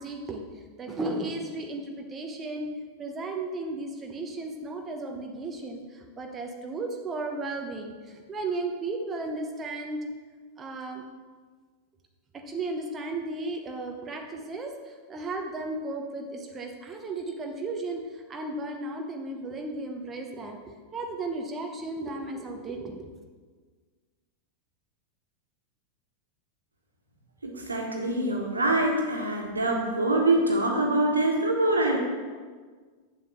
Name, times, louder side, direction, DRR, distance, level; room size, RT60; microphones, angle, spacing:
voice 1, 0.0-2.7 3.0-10.0 10.6-11.0 12.3-23.1, right 2 dB, 20° right, 2 dB, 1.1 m, -35 dB
voice 2, 27.4-32.0, right 2 dB, 80° right, 1 dB, 1.8 m, -24 dB
8.1 x 7.3 x 6.2 m, 1.5 s
figure-of-eight pair, 90°, 0 cm